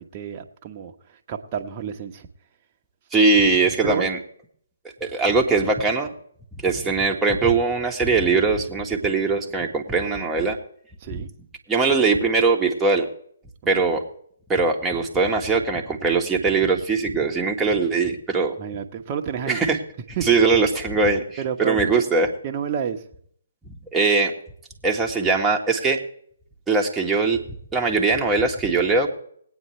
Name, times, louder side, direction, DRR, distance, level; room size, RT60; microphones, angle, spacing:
voice 1, 0.0-2.3 3.8-4.2 11.0-11.3 18.6-19.6 20.2-20.3 21.4-22.0 22.4-23.0, right 8 dB, 35° right, 4 dB, 1.0 m, -30 dB
voice 2, 3.1-4.2 5.0-6.1 6.6-10.6 11.1-11.2 11.7-13.1 13.7-14.0 14.5-18.6 19.5-19.8 20.2-22.3 23.9-24.3 24.8-26.0 26.7-27.4 27.7-29.1, right 4 dB, 10° right, 0 dB, 1.4 m, -21 dB
20.5 x 9.2 x 3.2 m, 0.63 s
figure-of-eight pair, 140°, 0 cm